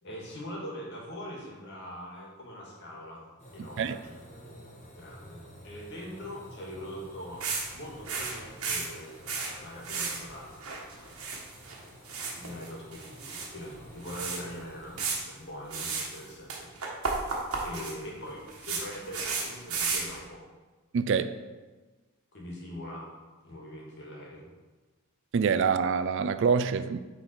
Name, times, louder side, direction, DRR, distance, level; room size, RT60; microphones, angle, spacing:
voice 1, 0.0-3.2 3.5-4.1 5.0-7.4 7.7-9.2 9.6-11.3 12.3-16.7 17.6-20.4 22.3-23.1 23.4-24.5, equal, 55° left, -3 dB, 2.1 m, -42 dB
sound 1, 3.4-15.1, equal, 30° left, 1.6 m, -51 dB
sound 2, 7.4-7.7 7.9-9.5 9.8-10.2 10.5-11.8 12.0-13.5 13.7-13.8 14.0-14.4 15.0-15.2 15.7-16.2 16.5-20.2, right 4 dB, 80° right, 1.4 m, -33 dB
voice 2, 20.9-21.4 25.3-27.0, right 6 dB, 60° right, 12 dB, 0.3 m, -25 dB
8.9 x 4.0 x 4.5 m, 1.3 s
head